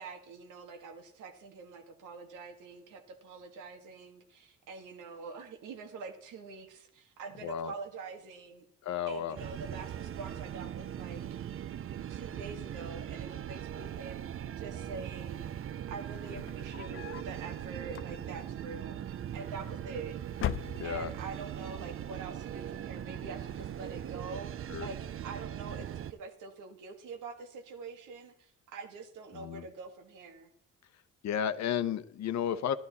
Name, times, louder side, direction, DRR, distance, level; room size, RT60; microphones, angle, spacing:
voice 1, 0.0-8.7 9.1-11.2 12.1-15.4 15.9-19.0 19.3-20.2 20.8-24.5 24.8-30.5, right 4 dB, 90° right, 6 dB, 1.8 m, -45 dB
voice 2, 7.4-7.7 8.8-9.4 20.8-21.1 24.7-24.9 29.3-29.7 31.2-32.7, left 9 dB, 65° left, 13 dB, 0.8 m, -33 dB
sound 1, 9.4-26.1, right 10 dB, 45° right, 0.5 m, -40 dB
sound 2, 16.3-17.4 17.9-18.5 19.5-20.0 20.3-21.3, left 11 dB, 45° left, 0.4 m, -38 dB
12.0 x 12.0 x 4.1 m, 0.67 s
cardioid pair, 90°, 30 cm